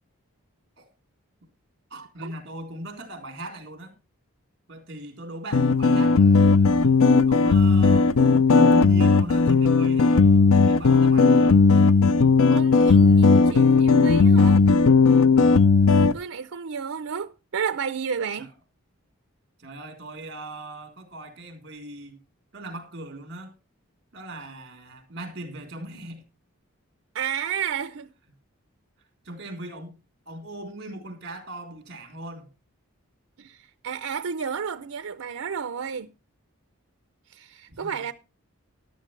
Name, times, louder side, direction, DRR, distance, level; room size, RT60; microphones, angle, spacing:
voice 1, 1.9-3.9 4.7-6.8 7.3-8.1 8.5-11.6 15.8-16.2 18.4-18.5 19.6-22.2 22.5-23.5 24.1-26.2 29.2-30.0 30.3-32.5 37.7-38.1, right 1 dB, 50° right, 3.7 m, -39 dB
sound 1, 5.5-16.1, left 4 dB, 80° left, 0.5 m, -17 dB
voice 2, 12.5-14.6 16.1-18.5 27.1-28.1 33.4-36.1 37.3-38.1, right 7 dB, 80° right, 0.6 m, -32 dB
13.5 x 12.0 x 3.2 m
head